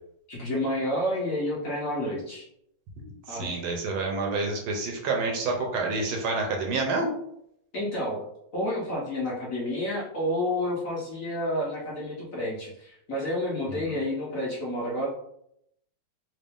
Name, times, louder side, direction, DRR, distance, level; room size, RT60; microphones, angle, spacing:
voice 1, 0.3-2.5 3.3-3.6 7.7-8.2 8.5-15.1, left 1 dB, 50° left, -5 dB, 1.2 m, -30 dB
voice 2, 3.3-7.1 13.9-14.0, right 3 dB, 80° right, 1 dB, 1.7 m, -28 dB
3.8 x 2.7 x 3.4 m, 0.75 s
omnidirectional pair, 2.3 m